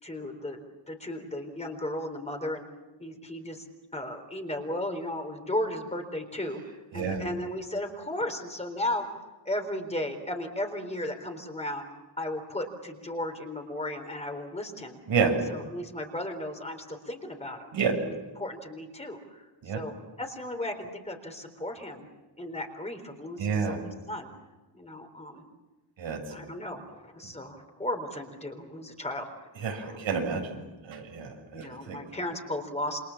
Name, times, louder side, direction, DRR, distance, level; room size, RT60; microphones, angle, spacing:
voice 1, 0.0-2.6 3.0-3.6 3.9-9.2 9.4-11.8 12.2-15.0 15.5-17.7 18.0-22.1 22.4-24.3 24.7-25.4 26.3-29.5 29.8-30.1 31.5-33.0, left 1 dB, 15° left, 5 dB, 4.0 m, -35 dB
voice 2, 23.4-23.8 26.0-26.4 29.6-30.6 30.9-32.0, right 6 dB, 85° right, 3 dB, 7.4 m, -29 dB
28.5 x 26.5 x 7.3 m, 1.2 s
wide cardioid pair, 145°, 45 cm